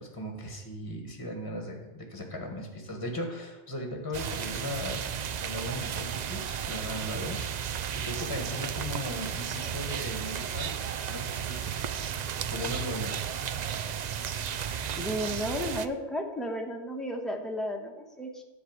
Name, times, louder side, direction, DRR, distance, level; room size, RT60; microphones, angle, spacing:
voice 1, 0.0-10.7 11.1-11.8 12.5-13.1, left 1 dB, 20° left, 2 dB, 1.3 m, -37 dB
sound 1, 4.1-15.9, right 8 dB, 60° right, 0.4 m, -34 dB
voice 2, 15.0-18.4, equal, ahead, 1 dB, 1.1 m, -33 dB
10.5 x 4.7 x 7.9 m, 1.1 s
omnidirectional pair, 1.2 m